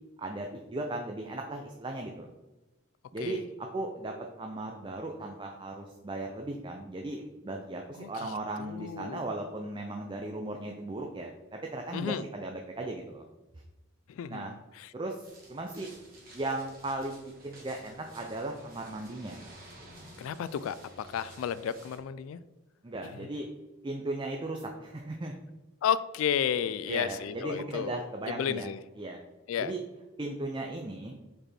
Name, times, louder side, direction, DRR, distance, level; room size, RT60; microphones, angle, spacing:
voice 1, 0.2-2.3 3.1-13.2 14.3-14.5 14.9-15.9 16.3-19.4 22.8-23.5 23.8-25.3 26.9-28.7 29.0-29.2 29.6-29.8 30.2-31.2, right 2 dB, 25° right, 2 dB, 0.5 m, -37 dB
voice 2, 7.9-8.3 8.6-9.2 11.9-12.2 14.1-14.9 20.2-22.4 23.0-23.1 25.8-28.8 29.5-29.7, left 8 dB, 85° left, 15 dB, 0.3 m, -33 dB
sound 1, 15.2-22.0, right 1 dB, 45° right, 1.7 m, -52 dB
5.1 x 4.7 x 4.3 m, 1.1 s
head